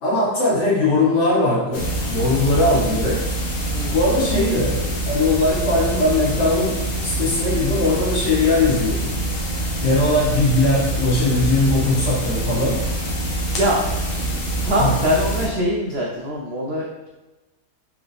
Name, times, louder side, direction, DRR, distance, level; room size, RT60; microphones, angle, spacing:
voice 1, 0.0-3.2 3.9-9.2 9.4-9.6 9.8-12.8 14.8-15.0, left 2 dB, 90° left, -5 dB, 1.9 m, -20 dB
sound 1, 1.7-15.5, right 1 dB, 60° left, 1.4 m, -25 dB
voice 2, 13.3-13.8 14.1-14.3 14.6-17.1, equal, 80° right, -2 dB, 0.5 m, -23 dB
3.6 x 3.5 x 3.5 m, 1.1 s
omnidirectional pair, 1.8 m